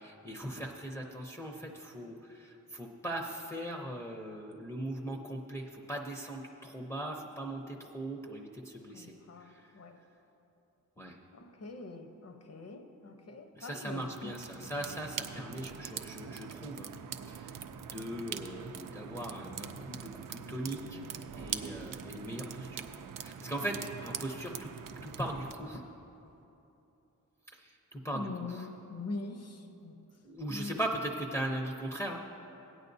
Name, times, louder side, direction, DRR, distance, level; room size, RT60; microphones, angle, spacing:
voice 1, 0.0-9.1 9.4-9.6 11.0-11.2 13.5-16.9 17.3-21.0 21.3-22.9 23.2-23.8 24.0-24.7 25.0-25.8 27.5-28.7 30.2-32.2, right 1 dB, 10° left, -2 dB, 0.6 m, -39 dB
voice 2, 8.9-10.0 11.3-14.4 23.6-23.8 28.1-30.0 30.5-30.8, left 3 dB, 50° left, 4 dB, 0.9 m, -43 dB
sound 1, 14.0-25.5, right 7 dB, 85° right, 0.5 m, -43 dB
sound 2, 21.0-26.4, right 4 dB, 35° right, 0.6 m, -55 dB
17.0 x 9.3 x 2.7 m, 2.9 s
wide cardioid pair, 135°, 32 cm